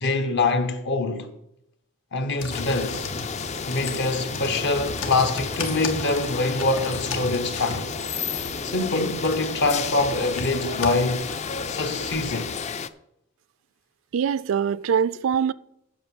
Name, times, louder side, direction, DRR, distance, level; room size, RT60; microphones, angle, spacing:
voice 1, 0.0-1.3 2.1-3.1 3.7-8.0 8.6-11.2 11.7-12.6, left 2 dB, 60° left, 1.2 m, -24 dB
sound 1, 2.4-12.6, left 2 dB, 90° left, 1.7 m, -36 dB
sound 2, 2.5-12.9, left 6 dB, 35° left, 0.4 m, -32 dB
voice 2, 14.1-15.5, right 7 dB, 75° right, 0.4 m, -23 dB
8.9 x 6.6 x 7.1 m
head